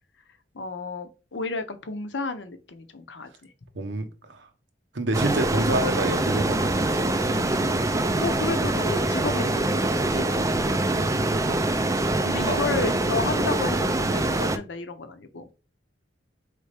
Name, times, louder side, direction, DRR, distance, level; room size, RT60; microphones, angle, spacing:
voice 1, 0.5-3.5 8.2-10.2 12.2-15.5, left 3 dB, 75° left, 0.7 m, -32 dB
voice 2, 3.7-4.5 4.9-7.0 10.6-11.6 12.4-12.6, right 2 dB, 75° right, 0.9 m, -29 dB
sound 1, 5.1-14.6, right 2 dB, 20° right, 0.4 m, -24 dB
4.2 x 3.4 x 3.3 m
head